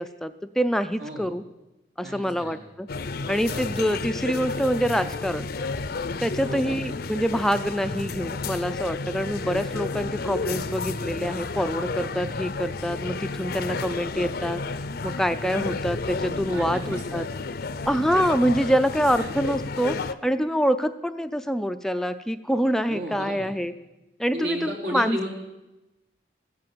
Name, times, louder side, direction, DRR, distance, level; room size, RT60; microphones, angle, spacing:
voice 1, 0.0-1.4 2.0-2.9 3.3-5.5 6.2-14.6 15.0-17.2 17.9-20.0 20.2-23.7 24.2-25.2, equal, 5° left, 10 dB, 0.4 m, -26 dB
voice 2, 2.0-2.6 3.5-3.6 6.4-6.8 16.5-17.2 22.9-23.5 24.3-25.3, equal, 80° right, -1 dB, 3.9 m, -33 dB
sound 1, 2.9-20.1, left 3 dB, 60° left, 0.6 m, -31 dB
15.0 x 9.7 x 7.7 m, 1.0 s
head